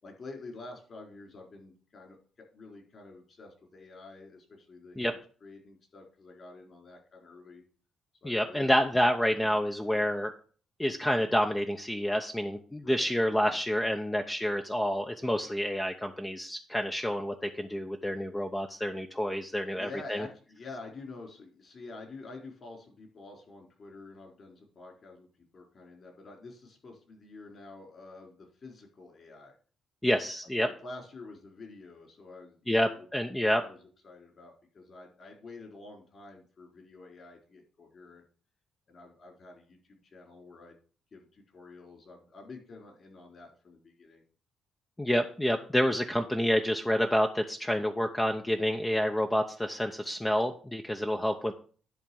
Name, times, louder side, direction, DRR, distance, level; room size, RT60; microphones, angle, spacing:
voice 1, 0.0-7.6 8.2-8.8 9.3-9.6 9.9-10.1 12.8-13.0 13.4-13.6 19.7-25.3 25.5-29.5 30.6-33.1 33.5-38.2 38.9-40.8 41.1-44.2, left 3 dB, 45° left, 1 dB, 4.1 m, -48 dB
voice 2, 8.2-10.3 10.8-20.3 30.0-30.7 32.7-33.6 45.0-51.5, equal, 10° left, 4 dB, 0.8 m, -28 dB
10.5 x 3.5 x 7.0 m, 0.42 s
cardioid pair, 90°, 0 cm